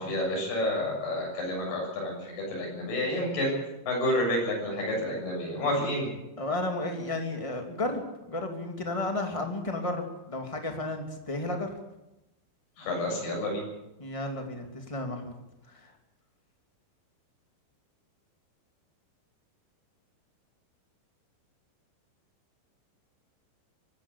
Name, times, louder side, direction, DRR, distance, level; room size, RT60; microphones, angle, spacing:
voice 1, 0.0-3.5 3.9-6.1 12.8-13.6, left 1 dB, 55° left, -2 dB, 9.2 m, -29 dB
voice 2, 6.4-11.7 14.0-15.3 15.7-15.9, left 2 dB, 15° left, 3 dB, 1.1 m, -33 dB
24.5 x 13.5 x 8.5 m, 0.92 s
omnidirectional pair, 5.3 m